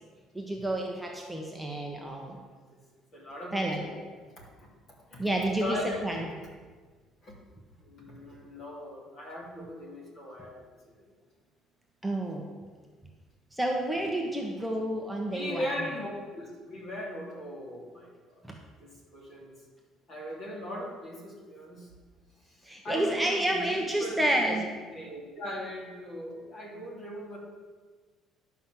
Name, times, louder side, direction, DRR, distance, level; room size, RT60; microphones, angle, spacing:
voice 1, 0.3-2.4 3.5-3.8 5.2-6.2 12.0-12.5 13.5-15.6 18.4-18.5 22.6-24.7, right 1 dB, 5° right, 0 dB, 1.1 m, -30 dB
voice 2, 3.1-4.1 4.4-4.5 5.1-5.3 5.6-6.2 7.2-7.4 7.8-10.6 11.0-11.1 15.3-18.4 18.8-19.5 20.1-21.9 22.4-24.6 24.9-27.4, left 1 dB, 45° left, -2 dB, 3.3 m, -39 dB
11.5 x 5.9 x 7.6 m, 1.5 s
cardioid pair, 140°, 0 cm